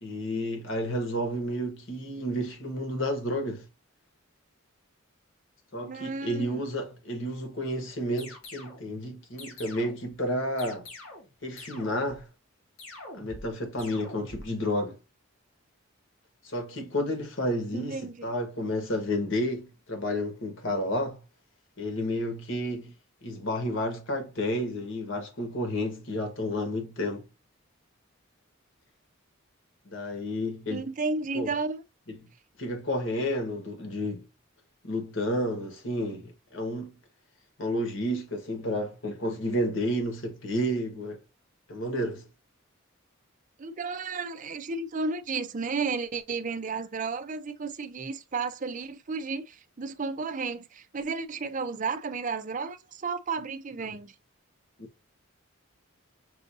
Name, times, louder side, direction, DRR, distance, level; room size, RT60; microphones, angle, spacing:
voice 1, 0.0-3.7 5.7-10.9 11.4-12.3 13.2-15.0 16.4-21.2 21.8-22.9 23.2-27.2 29.8-30.9 31.3-31.5 32.1-32.3 32.6-34.2 34.8-37.0 37.6-41.2 41.7-42.2 53.9-54.0, equal, 65° left, 1.3 m, -31 dB
voice 2, 5.8-6.6 17.7-18.3 30.7-31.8 43.6-54.1, right 4 dB, 35° right, 0.5 m, -33 dB
sound 1, 8.2-8.9 9.4-10.1 10.6-11.3 11.6-12.2 12.8-13.5 13.8-14.5, left 2 dB, 80° left, 2.0 m, -45 dB
6.1 x 2.6 x 2.6 m
head